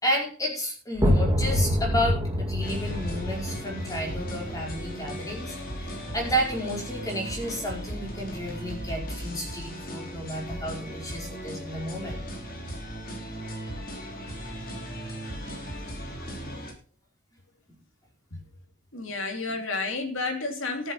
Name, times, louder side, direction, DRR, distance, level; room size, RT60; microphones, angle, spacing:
voice 1, 0.0-5.5 6.1-12.2 16.4-16.5, equal, 15° left, 4.7 m, -31 dB
sound 1, 0.9-6.5, equal, 15° right, 2.0 m, -27 dB
sound 2, 2.6-16.7, equal, 40° left, 3.5 m, -37 dB
voice 2, 18.9-20.9, left 3 dB, 65° left, 3.3 m, -31 dB
14.0 x 8.1 x 5.7 m
head